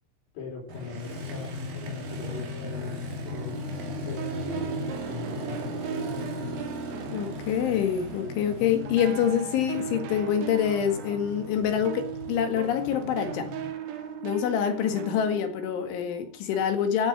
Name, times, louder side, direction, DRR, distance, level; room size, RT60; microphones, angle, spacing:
voice 1, 0.3-3.0 3.2-3.6 3.9-4.6 5.1-5.9, left 4 dB, 70° left, 6.4 m, -40 dB
Motorcycle, 0.7-13.7, left 1 dB, 55° right, 3.9 m, -37 dB
sound 1, 3.3-8.5 8.9-16.6, right 9 dB, 80° right, 3.9 m, -39 dB
voice 2, 7.1-13.5 14.2-17.1, left 8 dB, 90° left, 4.5 m, -26 dB
13.5 x 9.2 x 6.2 m
omnidirectional pair, 5.3 m